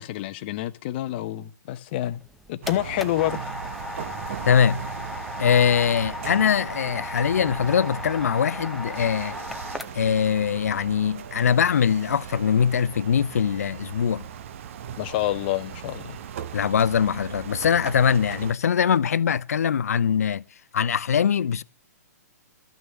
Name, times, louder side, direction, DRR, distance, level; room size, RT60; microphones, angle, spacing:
voice 1, 0.0-2.2 2.5-3.4 15.0-16.2, left 14 dB, 35° left, 0.8 m, -28 dB
sound 1, 2.1-10.2, left 2 dB, ahead, 0.9 m, -36 dB
sound 2, 2.6-18.5, right 8 dB, 45° right, 1.0 m, -38 dB
voice 2, 4.4-4.8 5.4-9.3 9.9-14.2 16.5-20.4 20.7-21.6, left 7 dB, 60° left, 0.6 m, -22 dB
13.5 x 6.4 x 9.7 m
figure-of-eight pair, 120°, 9 cm